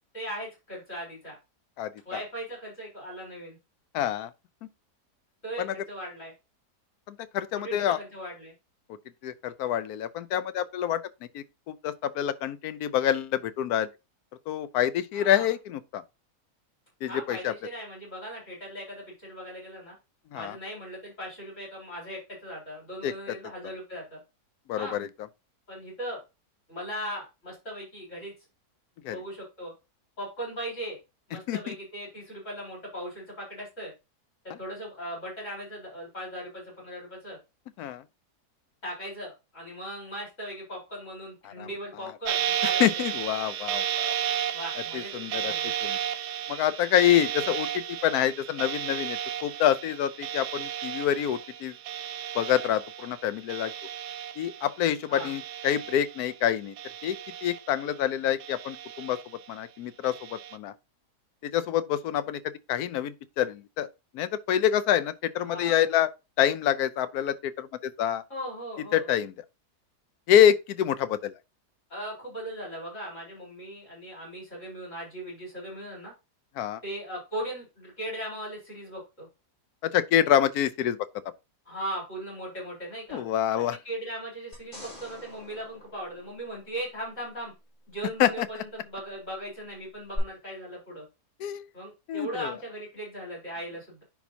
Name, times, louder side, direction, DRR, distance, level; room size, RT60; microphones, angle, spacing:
voice 1, 0.1-1.4 2.1-3.6 5.4-6.3 7.5-8.5 15.1-15.5 17.1-19.9 20.3-24.2 24.8-25.0 25.7-26.2 26.7-28.3 29.1-29.7 30.2-31.0 31.3-33.9 34.6-37.4 38.8-43.0 44.5-45.7 55.1-55.3 65.4-65.8 68.3-69.1 71.9-76.1 76.8-79.3 81.7-83.2 83.6-87.5 87.9-91.0 91.7-94.0, right 1 dB, 45° left, 4.5 m, -38 dB
voice 2, 1.8-2.2 3.9-4.3 5.6-5.7 7.1-8.0 9.2-11.0 11.3-13.9 14.5-16.0 17.0-17.5 20.3-20.6 23.0-23.1 24.7-25.1 29.0-29.2 31.5-31.7 34.5-34.6 37.8-38.0 41.4-41.7 42.8-44.2 44.9-45.5 45.8-46.0 46.5-51.7 52.3-53.7 54.4-56.7 57.0-59.2 59.5-60.7 61.4-62.4 62.7-63.9 64.1-66.1 66.4-68.2 68.9-69.3 70.3-71.3 76.6-76.8 79.8-81.0 83.1-83.8 88.2-88.5 91.4-91.6 92.1-92.5, left 10 dB, 75° left, 1.1 m, -26 dB
sound 1, 42.3-54.8 55.1-56.3 56.8-58.0 58.4-59.5 60.0-60.6, right 10 dB, 80° right, 1.1 m, -33 dB
sound 2, 84.5-87.0 90.1-90.2, left 1 dB, 30° left, 4.6 m, -46 dB
10.5 x 4.1 x 2.8 m
omnidirectional pair, 1.8 m